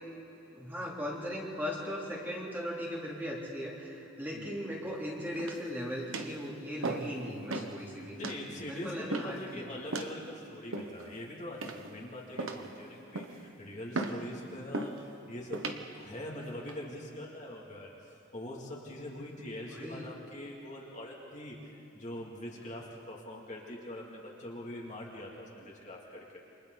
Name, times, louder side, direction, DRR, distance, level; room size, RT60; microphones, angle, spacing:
voice 1, 0.5-8.2 8.7-9.6 19.7-20.1, equal, 10° right, -4 dB, 3.2 m, -38 dB
sound 1, 5.4-5.7 6.1-6.4 6.8-7.2 7.5-7.7 8.2-8.4 9.1-9.4 9.9-10.2 10.7-11.1 11.6-12.0 12.4-12.7 13.1-13.4 13.9-14.2 14.7-15.0 15.5-15.8 16.4-16.8, right 2 dB, 75° right, 1.3 m, -36 dB
voice 2, 8.2-15.7 15.9-17.9 18.3-26.4, left 1 dB, 35° left, -3 dB, 2.6 m, -43 dB
29.0 x 25.5 x 4.1 m, 2.8 s
head